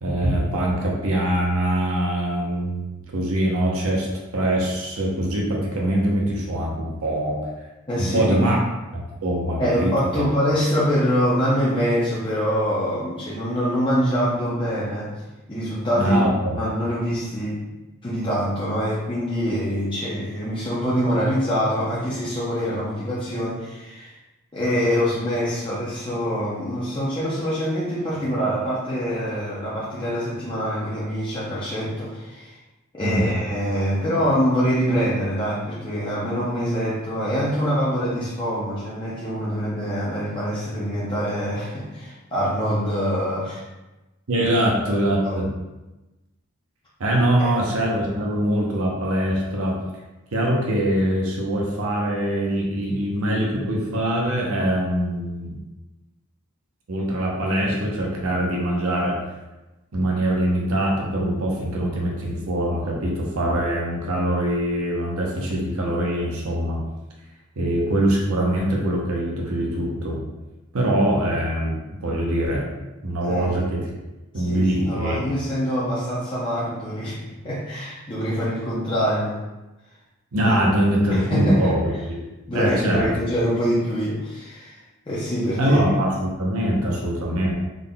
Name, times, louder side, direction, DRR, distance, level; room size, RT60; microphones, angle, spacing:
voice 1, 0.0-4.1 4.3-7.4 8.0-8.6 8.9-10.2 16.0-16.6 33.0-33.4 44.3-45.5 47.0-49.8 50.3-55.6 56.9-59.1 59.9-66.8 67.6-70.2 70.7-72.7 73.0-73.8 74.3-75.2 80.3-82.2 82.5-83.1 85.6-87.5, right 1 dB, 80° right, -2 dB, 0.7 m, -23 dB
voice 2, 7.9-8.6 9.6-15.2 15.5-16.2 16.5-17.6 18.0-24.1 24.5-32.6 32.9-43.6 44.4-44.5 44.9-45.0 45.2-45.3 47.4-47.6 73.2-73.6 74.4-79.4 80.4-80.6 81.1-81.7 82.5-84.8 85.1-85.8, equal, 20° left, -9 dB, 0.6 m, -25 dB
3.8 x 3.7 x 2.2 m, 1.1 s
head